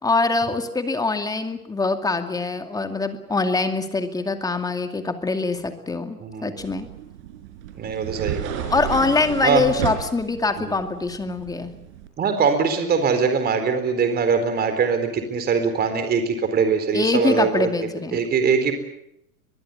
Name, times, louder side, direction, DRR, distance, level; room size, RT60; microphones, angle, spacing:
voice 1, 0.0-6.9 8.7-11.7 16.9-18.2, left 3 dB, 10° left, 7 dB, 2.3 m, -24 dB
voice 2, 6.2-6.5 7.8-8.6 9.4-9.6 10.6-10.8 12.2-17.7 18.1-18.7, right 6 dB, 20° right, 8 dB, 4.2 m, -22 dB
sound 1, 6.6-12.1, right 10 dB, 50° right, 5.2 m, -33 dB
23.0 x 22.0 x 8.5 m, 0.79 s
hypercardioid pair, 120°, 45 cm